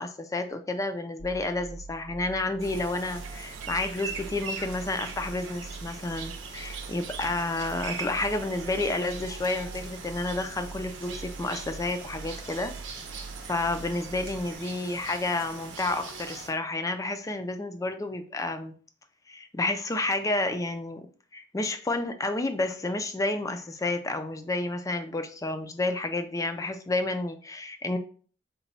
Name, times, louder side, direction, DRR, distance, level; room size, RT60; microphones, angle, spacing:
voice 1, 0.0-12.7 13.5-18.7 19.3-21.1 21.3-28.0, left 2 dB, 15° left, 8 dB, 0.4 m, -30 dB
sound 1, 1.2-14.5, right 3 dB, 75° left, 0.6 m, -44 dB
sound 2, 2.6-16.5, right 5 dB, 75° right, 0.7 m, -41 dB
4.0 x 2.2 x 4.0 m, 0.43 s
head